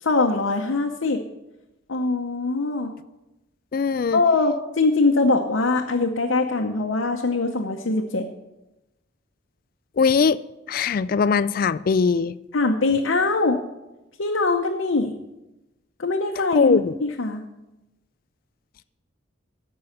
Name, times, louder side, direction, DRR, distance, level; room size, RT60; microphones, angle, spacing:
voice 1, 0.0-1.2 1.9-2.9 4.1-8.3 12.5-13.6 14.2-15.1 16.0-17.4, left 3 dB, 80° left, 1 dB, 0.8 m, -22 dB
voice 2, 3.7-4.2 10.0-10.4 10.7-12.3 16.5-16.9, left 5 dB, 45° left, 16 dB, 0.3 m, -20 dB
14.0 x 5.5 x 6.6 m, 0.99 s
head